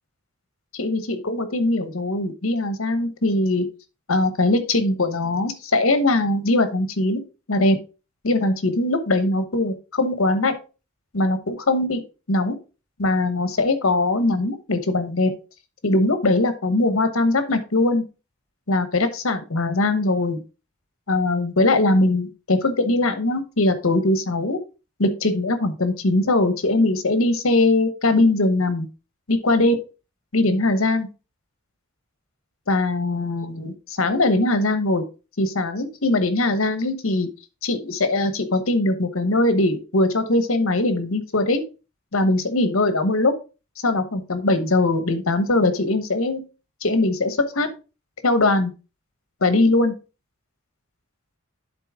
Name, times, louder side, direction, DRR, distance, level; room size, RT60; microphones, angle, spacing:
voice 1, 0.7-3.7 4.1-7.2 7.5-7.8 8.2-10.5 11.1-12.0 12.3-12.6 13.0-15.3 15.8-18.0 18.7-20.4 21.1-24.6 25.0-28.9 29.3-29.8 30.3-31.1 32.7-35.0 35.4-37.3 37.6-41.6 42.1-43.3 43.8-46.4 46.8-47.7 48.2-48.7 49.4-50.0, left 2 dB, 75° left, 10 dB, 1.1 m, -21 dB
10.5 x 4.1 x 3.6 m, 0.31 s
head